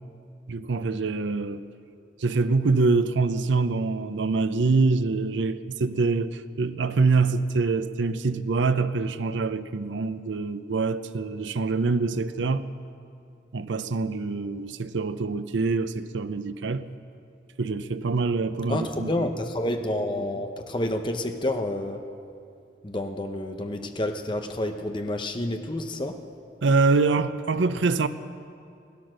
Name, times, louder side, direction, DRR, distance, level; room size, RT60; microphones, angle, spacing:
voice 1, 0.5-1.7 2.2-12.7 13.5-16.9 17.6-19.3 26.6-28.1, right 4 dB, 90° right, 0.6 m, -25 dB
voice 2, 18.7-22.0 22.8-26.2, left 1 dB, 25° left, 0.8 m, -29 dB
16.5 x 12.0 x 6.4 m
head